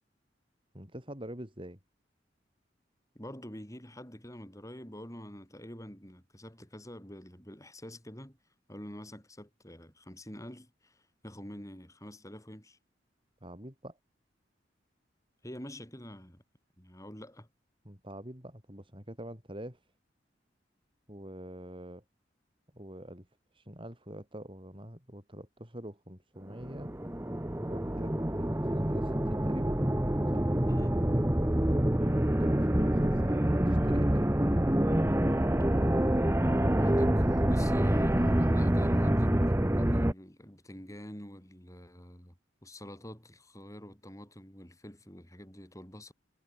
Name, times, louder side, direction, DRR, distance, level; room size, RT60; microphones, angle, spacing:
voice 1, 0.7-1.8 13.4-14.0 17.8-19.8 21.1-22.0 22.7-23.3 23.5-26.9 27.6-29.8 30.3-30.5 32.0-34.3, right 1 dB, 30° right, 6.5 m, -45 dB
voice 2, 3.1-8.4 8.7-12.8 15.4-16.4 16.8-17.5 30.6-31.1 36.8-42.3 42.6-46.1, equal, 20° left, 8.0 m, -47 dB
dark atmosphere, 26.6-40.1, right 1 dB, 15° right, 0.9 m, -26 dB
head